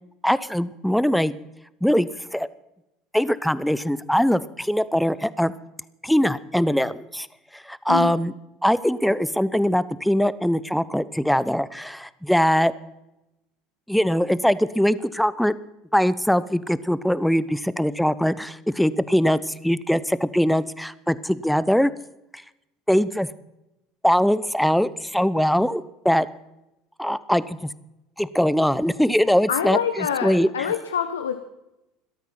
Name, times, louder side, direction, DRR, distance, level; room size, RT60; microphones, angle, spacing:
voice 1, 0.2-1.3 1.8-2.5 3.1-5.5 6.0-7.3 7.5-8.3 8.6-12.7 13.9-15.5 15.9-21.9 22.9-23.3 24.0-26.3 27.0-27.6 28.2-30.5, equal, ahead, 17 dB, 0.8 m, -22 dB
voice 2, 29.5-31.4, left 8 dB, 80° left, 9 dB, 0.9 m, -26 dB
17.5 x 13.0 x 5.9 m, 0.92 s
figure-of-eight pair, 70°, 0 cm